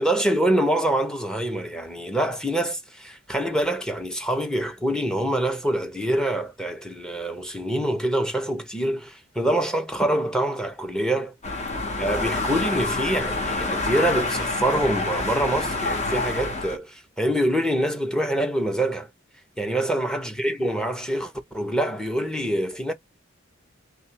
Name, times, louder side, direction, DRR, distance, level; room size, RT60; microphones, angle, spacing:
voice 1, 0.0-11.3 12.0-19.1 19.6-22.9, right 1 dB, 5° left, 0.9 m, -25 dB
sound 1, 11.4-16.8, left 3 dB, 35° left, 1.2 m, -27 dB
3.4 x 2.6 x 4.5 m
head